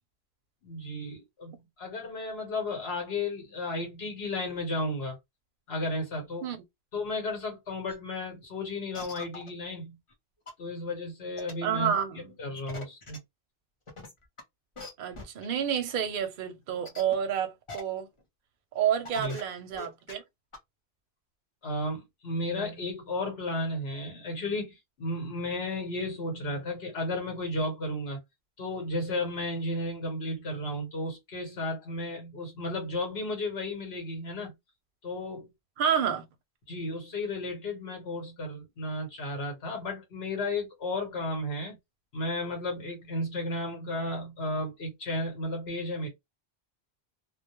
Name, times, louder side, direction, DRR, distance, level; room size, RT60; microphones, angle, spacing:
voice 1, 0.6-5.2 5.7-6.5 6.9-9.9 10.6-11.9 12.4-13.2 19.2-19.4 21.6-28.2 28.6-34.5 35.0-35.5 36.7-41.8 42.1-46.1, left 1 dB, 75° left, 1.2 m, -33 dB
sound 1, 7.9-8.0 8.4-8.5 8.9-9.5 10.1-10.2 10.5-10.6 11.4-11.5 12.5-13.2 13.9-14.4 14.8-14.9 15.1-15.4 15.9-16.0 16.9-17.1 17.7-17.8 18.2-18.3 18.8-18.9 19.0-19.4 19.7-20.1 20.5-20.6, left 2 dB, 35° left, 0.7 m, -42 dB
voice 2, 11.6-12.3 15.0-18.1 18.7-20.2 35.8-36.2, right 8 dB, 60° right, 0.6 m, -29 dB
2.2 x 2.1 x 2.9 m
omnidirectional pair, 1.1 m